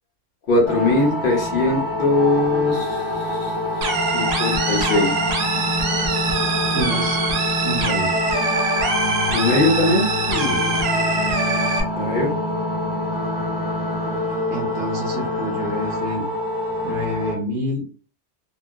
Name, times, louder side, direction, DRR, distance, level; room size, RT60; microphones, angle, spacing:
voice 1, 0.5-5.2 9.3-10.8 11.9-12.3, left 2 dB, 50° left, -3 dB, 0.9 m, -21 dB
sound 1, 0.7-17.4, left 2 dB, 15° left, 0.6 m, -26 dB
sound 2, 3.8-11.8, right 3 dB, 65° right, 0.4 m, -23 dB
voice 2, 6.7-7.2 7.6-8.1 10.3-10.8 14.5-16.2 16.8-17.8, equal, 50° right, -1 dB, 1.0 m, -28 dB
2.7 x 2.0 x 2.2 m, 0.38 s
omnidirectional pair, 1.2 m